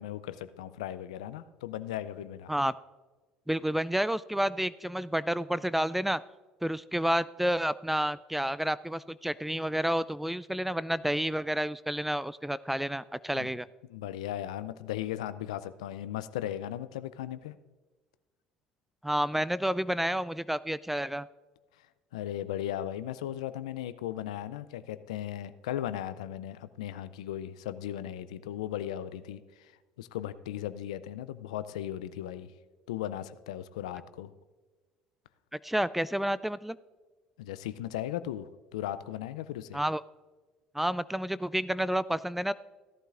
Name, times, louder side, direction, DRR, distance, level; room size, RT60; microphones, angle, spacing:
voice 1, 0.0-2.5 13.3-13.6 13.9-17.6 22.1-29.7 30.0-32.5 32.9-34.3 37.4-39.8, left 12 dB, 85° left, 13 dB, 0.4 m, -37 dB
voice 2, 3.5-6.2 6.6-13.7 19.0-21.3 35.6-36.8 39.7-40.0 40.7-42.5, equal, 5° right, 18 dB, 0.3 m, -30 dB
16.0 x 11.5 x 2.5 m, 1.3 s
hypercardioid pair, 70°, 3 cm